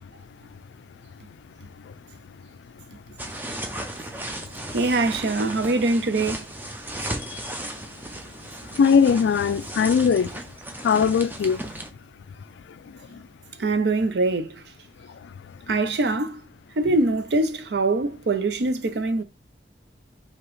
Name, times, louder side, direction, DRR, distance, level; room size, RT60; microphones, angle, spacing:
sound 1, 3.2-11.9, right 1 dB, 10° right, 0.5 m, -35 dB
voice 1, 4.7-6.5 13.6-14.6 15.7-16.4 16.8-19.2, right 2 dB, 70° right, 0.5 m, -23 dB
voice 2, 8.8-10.3 10.8-11.6, left 6 dB, 80° left, 0.3 m, -19 dB
4.8 x 2.9 x 3.1 m
head